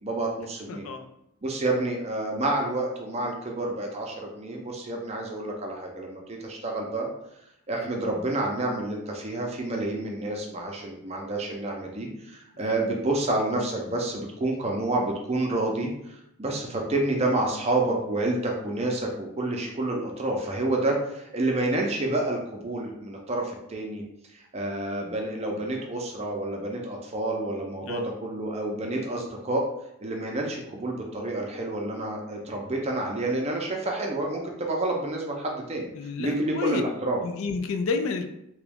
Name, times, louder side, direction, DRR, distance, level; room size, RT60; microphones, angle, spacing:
voice 1, 0.0-0.9 1.4-7.1 7.7-24.0 24.3-29.6 30.0-35.9 36.2-37.2, right 2 dB, 30° right, 0 dB, 0.5 m, -29 dB
voice 2, 0.7-1.0 7.7-7.9 12.5-12.8 27.8-28.0 35.9-36.8 37.2-38.2, left 4 dB, 65° left, 6 dB, 0.3 m, -31 dB
2.9 x 2.3 x 3.4 m, 0.81 s
head